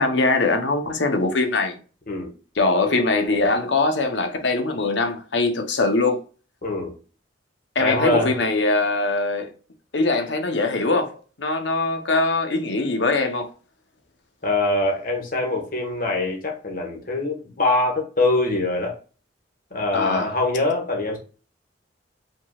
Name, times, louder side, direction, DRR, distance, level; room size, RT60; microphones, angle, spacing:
voice 1, 0.0-1.8 2.6-6.2 7.7-9.5 9.9-13.5 19.9-20.3, left 3 dB, 75° left, 0.9 m, -22 dB
voice 2, 6.6-6.9 7.8-8.3 14.4-19.0 19.7-21.2, left 2 dB, 50° left, 1.5 m, -23 dB
5.1 x 3.8 x 2.4 m
head